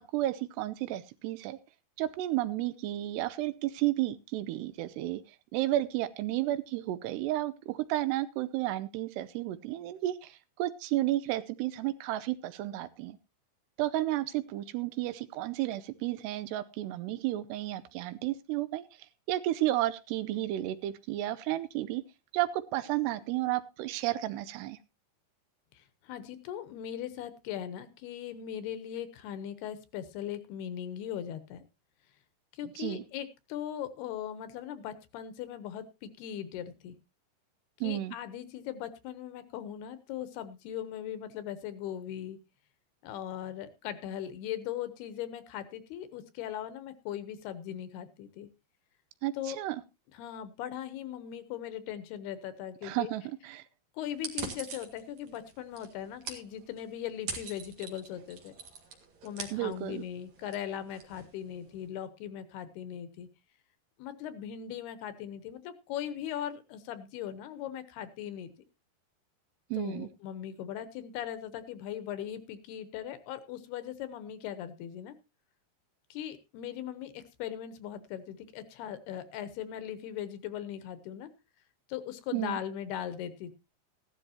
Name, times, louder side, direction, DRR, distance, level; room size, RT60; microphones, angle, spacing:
voice 1, 0.0-1.6 2.0-5.2 5.5-13.2 13.8-18.8 19.3-22.0 22.3-24.8 32.8-33.0 37.8-38.2 49.2-49.8 52.8-53.6 59.5-60.0 69.7-70.1 82.3-82.6, right 15 dB, 80° right, 14 dB, 2.8 m, -32 dB
voice 2, 25.7-31.6 32.5-36.9 37.8-42.4 43.0-48.5 49.3-49.6 50.1-53.1 53.9-58.5 59.2-63.3 64.0-68.5 69.8-75.2 76.1-81.3 81.9-83.5, left 10 dB, 75° left, 12 dB, 2.8 m, -39 dB
sound 1, 54.1-61.9, right 5 dB, 50° right, 2.7 m, -44 dB
15.5 x 12.5 x 2.8 m, 0.26 s
omnidirectional pair, 4.9 m